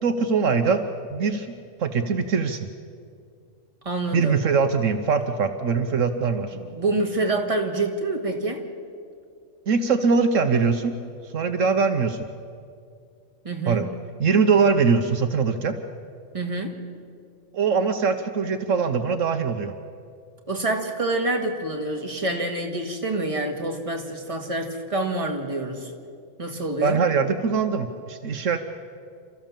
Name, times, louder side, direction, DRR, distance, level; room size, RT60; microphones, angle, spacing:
voice 1, 0.0-0.8 1.1-1.5 1.8-2.7 4.1-6.6 9.7-10.9 11.2-12.3 13.7-13.9 14.2-15.8 17.5-19.7 26.8-28.6, right 5 dB, 70° right, 7 dB, 1.3 m, -22 dB
voice 2, 3.8-4.4 6.5-8.6 13.4-13.9 16.3-16.8 20.5-25.9 26.4-27.0, right 2 dB, 25° right, 2 dB, 2.0 m, -27 dB
29.5 x 14.0 x 7.4 m, 2.3 s
omnidirectional pair, 1.4 m